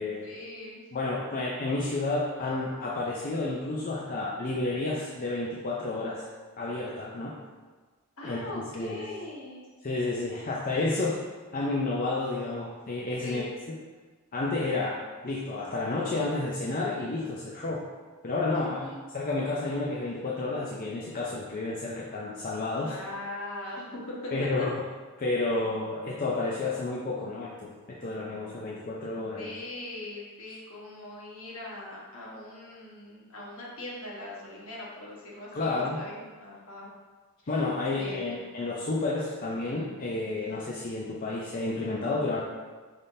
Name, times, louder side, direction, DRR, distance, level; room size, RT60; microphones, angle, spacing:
voice 1, 0.2-0.8 8.2-9.6 13.2-13.5 18.5-19.0 22.8-24.3 24.6-24.7 29.3-36.9 37.4-37.5 38.0-38.4, left 2 dB, 65° left, -4 dB, 1.1 m, -41 dB
voice 2, 0.9-6.2 6.6-7.3 8.2-8.5 8.8-9.0 9.8-11.2 11.5-13.5 14.3-15.0 15.2-17.8 18.2-23.0 24.3-24.8 25.2-29.5 35.5-36.0 37.5-42.4, left 2 dB, 40° left, -4 dB, 0.5 m, -30 dB
5.5 x 3.5 x 2.6 m, 1.4 s
head